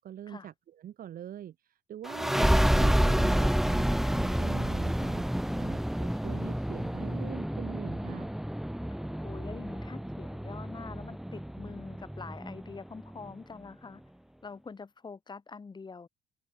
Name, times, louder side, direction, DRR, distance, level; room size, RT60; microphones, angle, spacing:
voice 1, 0.0-8.3, right 10 dB, 55° right, 6.6 m, -44 dB
sound 1, 2.0-13.3, equal, ahead, 1.4 m, -29 dB
voice 2, 8.9-14.0 14.4-16.1, left 4 dB, 25° left, 5.9 m, -45 dB
cardioid pair, 110°, 17 cm